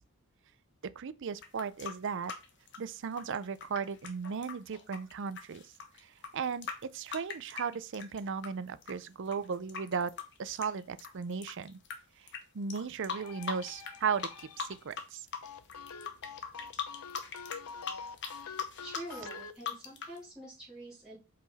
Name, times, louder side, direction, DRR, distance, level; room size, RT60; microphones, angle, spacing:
voice 1, 1.0-2.3 2.8-5.6 6.3-11.8 12.5-15.2 19.1-19.2, right 6 dB, 55° right, 0.5 m, -36 dB
sound 1, 1.4-8.5 8.8-11.9 12.3-12.4 12.7-14.0 14.2-15.0 15.3-20.2, left 6 dB, 55° left, 1.2 m, -40 dB
sound 2, 12.9-15.0 15.4-19.5, left 5 dB, 85° left, 0.6 m, -46 dB
voice 2, 18.8-21.2, right 1 dB, 5° right, 3.4 m, -46 dB
5.7 x 5.0 x 4.1 m
head